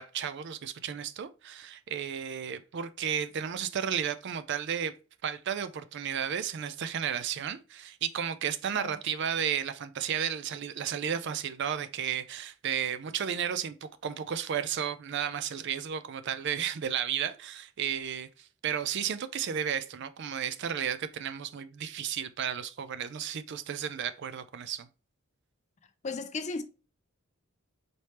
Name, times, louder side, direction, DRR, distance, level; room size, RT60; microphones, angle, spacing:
voice 1, 0.0-4.9 5.2-24.9, right 8 dB, 50° right, 0.4 m, -33 dB
voice 2, 26.0-26.6, left 3 dB, 30° left, 0.4 m, -34 dB
4.2 x 3.3 x 3.1 m
head